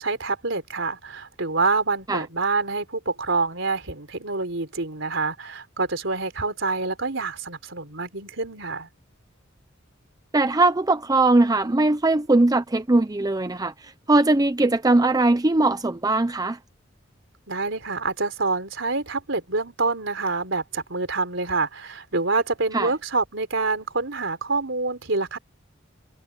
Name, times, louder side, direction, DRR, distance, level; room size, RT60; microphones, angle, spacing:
voice 1, 0.0-8.9 17.5-25.4, right 3 dB, 70° right, 4.6 m, -26 dB
voice 2, 10.3-16.6 22.7-22.9, right 2 dB, 20° right, 0.6 m, -20 dB
head